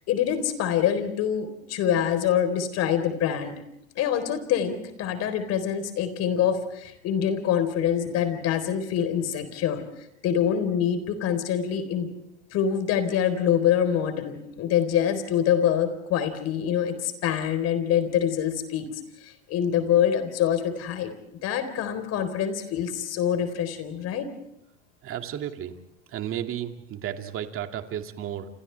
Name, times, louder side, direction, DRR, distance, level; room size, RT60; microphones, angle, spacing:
voice 1, 0.1-3.6 4.0-9.8 10.2-12.1 12.5-18.9 19.2-21.1 21.4-24.3, left 9 dB, 45° left, 9 dB, 4.0 m, -25 dB
voice 2, 25.0-25.7 26.1-28.5, right 10 dB, 40° right, 5 dB, 2.4 m, -33 dB
28.5 x 28.0 x 3.4 m, 0.78 s
hypercardioid pair, 90°, 34 cm